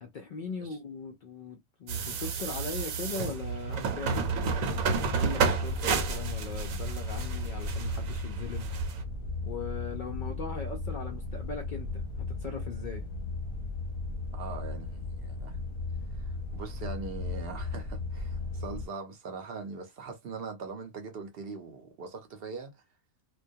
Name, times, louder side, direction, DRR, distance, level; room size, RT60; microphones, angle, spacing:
voice 1, 0.0-4.3 5.0-8.7 9.4-13.1, left 5 dB, 70° left, 0.4 m, -39 dB
sound 1, 1.9-9.0, right 6 dB, 80° right, 1.0 m, -31 dB
sound 2, 4.1-18.9, left 3 dB, 50° left, 0.8 m, -36 dB
voice 2, 14.3-15.6 16.2-22.7, right 4 dB, 55° right, 0.7 m, -41 dB
2.2 x 2.2 x 2.6 m
omnidirectional pair, 1.4 m